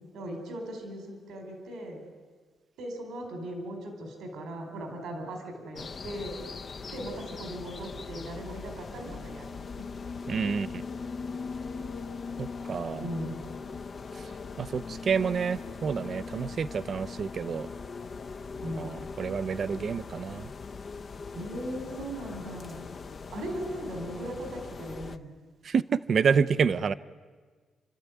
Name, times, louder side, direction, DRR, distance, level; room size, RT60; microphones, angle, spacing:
voice 1, 0.1-2.0 2.8-6.4 6.9-9.5 9.8-9.9 13.0-13.5 18.6-19.0 21.3-22.8 23.3-25.3, right 1 dB, 85° right, 4 dB, 4.3 m, -38 dB
sound 1, 5.8-25.2, left 4 dB, 40° left, 0.8 m, -40 dB
voice 2, 10.3-10.8 12.4-13.1 14.1-14.3 14.6-17.7 18.8-20.5 25.6-25.8 26.1-26.9, right 6 dB, 45° right, 15 dB, 0.6 m, -28 dB
29.0 x 13.0 x 9.3 m, 1.5 s
cardioid pair, 135°, 0 cm